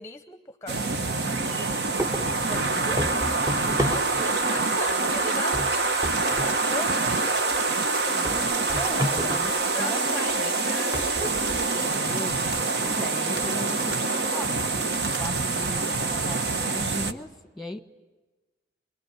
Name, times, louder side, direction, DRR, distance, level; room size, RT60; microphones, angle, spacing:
voice 1, 0.0-1.7 2.4-3.2 3.6-7.7 9.2-11.3, left 2 dB, 15° left, 9 dB, 0.8 m, -39 dB
sound 1, 0.7-17.1, right 3 dB, 65° right, 1.3 m, -26 dB
voice 2, 1.0-1.5 3.6-4.0 8.2-10.6 11.8-12.4 12.8-17.8, equal, ahead, 8 dB, 1.5 m, -38 dB
sound 2, 1.4-1.6 2.0-4.5 4.9-5.2 5.5-6.6 6.9-7.0 7.5-7.6 8.3-9.6 10.3-10.4 10.9-12.0, equal, 20° right, 1.1 m, -32 dB
26.0 x 23.0 x 9.7 m, 1.2 s
head